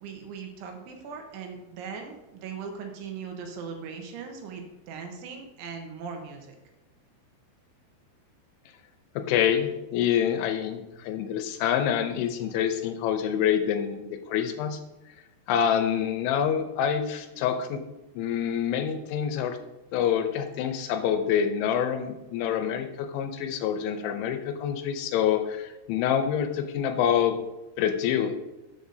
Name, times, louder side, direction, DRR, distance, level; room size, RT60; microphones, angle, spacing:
voice 1, 0.0-6.6, right 5 dB, 75° right, 4 dB, 3.5 m, -39 dB
voice 2, 9.2-14.8 15.5-17.8 18.2-19.6 19.9-27.4 27.8-28.4, left 9 dB, 80° left, 7 dB, 2.9 m, -26 dB
13.0 x 8.0 x 2.7 m, 1.0 s
omnidirectional pair, 5.6 m